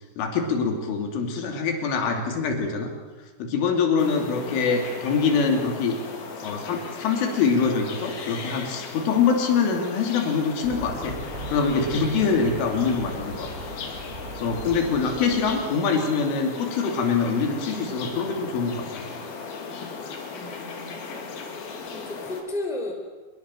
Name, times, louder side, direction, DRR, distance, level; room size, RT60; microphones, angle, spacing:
voice 1, 0.2-2.9 3.4-6.0 6.4-11.2 11.5-13.5 14.4-19.1, left 5 dB, 80° left, 3 dB, 5.3 m, -24 dB
voice 2, 3.7-4.6 20.3-21.3 21.8-22.9, left 2 dB, ahead, 2 dB, 3.4 m, -35 dB
sound 1, 4.0-22.4, left 5 dB, 55° left, 4.1 m, -37 dB
sound 2, 10.6-15.7, right 2 dB, 20° right, 3.6 m, -38 dB
25.0 x 22.5 x 7.7 m, 1.3 s
omnidirectional pair, 5.6 m